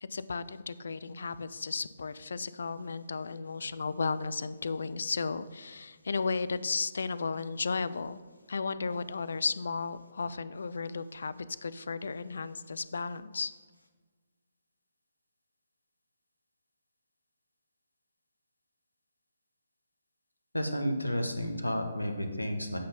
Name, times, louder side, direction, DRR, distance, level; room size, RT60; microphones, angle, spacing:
voice 1, 0.0-8.2 8.5-13.5, left 4 dB, 60° left, 15 dB, 0.3 m, -34 dB
voice 2, 20.5-22.8, equal, 85° left, 5 dB, 1.0 m, -31 dB
8.5 x 4.0 x 5.3 m, 1.4 s
figure-of-eight pair, 135°, 0 cm